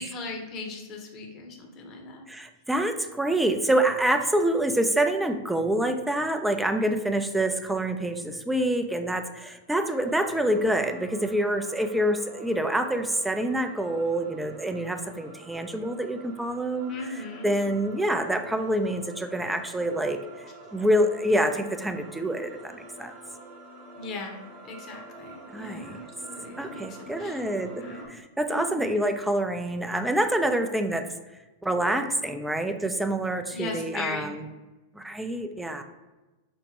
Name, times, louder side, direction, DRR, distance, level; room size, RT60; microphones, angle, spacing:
voice 1, 0.0-2.3 16.9-17.5 23.9-24.4 24.6-28.1 28.5-29.0 33.5-34.3, left 3 dB, 40° left, 2 dB, 0.8 m, -38 dB
voice 2, 2.3-20.2 20.7-23.1 25.5-26.0 26.6-27.8 28.1-31.1 31.6-34.4 34.9-35.8, right 1 dB, 5° right, 6 dB, 0.4 m, -26 dB
sound 1, 9.8-28.1, right 1 dB, 40° right, 0.9 m, -47 dB
5.2 x 2.1 x 2.8 m, 1.1 s
hypercardioid pair, 100°, 0 cm